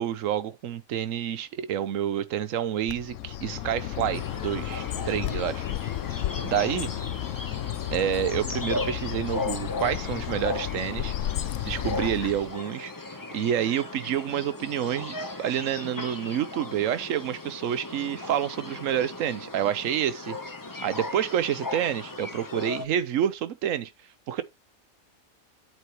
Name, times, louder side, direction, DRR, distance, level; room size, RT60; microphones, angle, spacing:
voice 1, 0.0-5.7 6.4-6.9 7.9-11.1 11.6-12.9 13.3-20.4 20.8-23.9 24.3-24.4, right 10 dB, 70° right, 1.1 m, -28 dB
Bird, 2.9-12.6, left 12 dB, 70° left, 0.9 m, -33 dB
sound 1, 4.1-22.9, left 2 dB, 20° left, 0.8 m, -37 dB
8.0 x 7.7 x 3.0 m
omnidirectional pair, 1.5 m